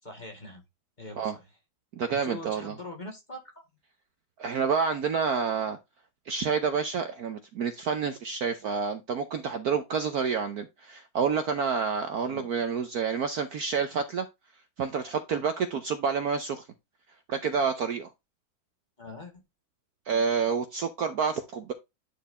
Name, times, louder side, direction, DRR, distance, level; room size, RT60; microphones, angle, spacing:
voice 1, 0.0-0.6 1.0-1.5 2.1-3.6 12.2-12.5 19.0-19.4, left 2 dB, 25° left, 1.7 m, -43 dB
voice 2, 2.0-2.7 4.4-5.8 6.3-14.3 14.8-16.7 17.3-18.1 20.1-21.7, right 6 dB, 60° right, 1.1 m, -28 dB
10.0 x 4.6 x 3.2 m
omnidirectional pair, 2.2 m